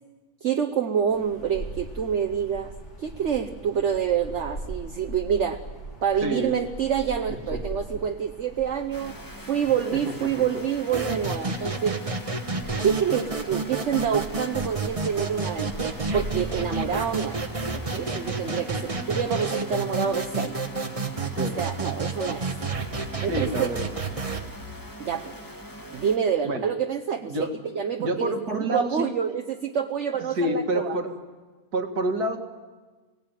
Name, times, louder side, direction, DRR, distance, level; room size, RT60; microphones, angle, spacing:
voice 1, 0.4-2.7 3.0-5.6 6.0-12.0 12.8-17.4 17.7-20.6 21.6-22.5 23.2-23.7 25.0-25.3 25.9-27.3 27.7-28.3 28.7-31.0, right 8 dB, 55° right, 6 dB, 1.2 m, -27 dB
sound 1, 1.1-20.1, right 1 dB, 80° left, 4.0 m, -42 dB
voice 2, 6.2-6.5 7.5-7.6 10.2-10.4 21.4-21.6 23.3-23.9 26.4-26.6 27.2-27.5 28.0-29.1 30.3-31.1 31.7-32.4, right 1 dB, 80° right, 4 dB, 2.6 m, -27 dB
sound 2, 8.9-26.2, equal, 15° left, 1.5 m, -43 dB
sound 3, 10.9-24.5, right 3 dB, 25° right, 1.2 m, -30 dB
23.5 x 17.5 x 9.2 m, 1.3 s
omnidirectional pair, 1.6 m